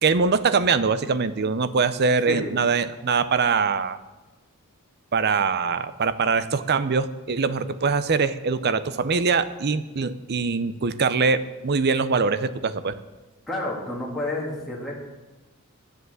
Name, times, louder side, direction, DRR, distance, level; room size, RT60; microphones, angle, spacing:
voice 1, 0.0-4.0 5.1-12.9, right 5 dB, 50° right, 13 dB, 0.6 m, -23 dB
voice 2, 13.5-15.0, left 1 dB, ahead, -5 dB, 2.1 m, -29 dB
10.0 x 8.1 x 7.9 m, 1.1 s
head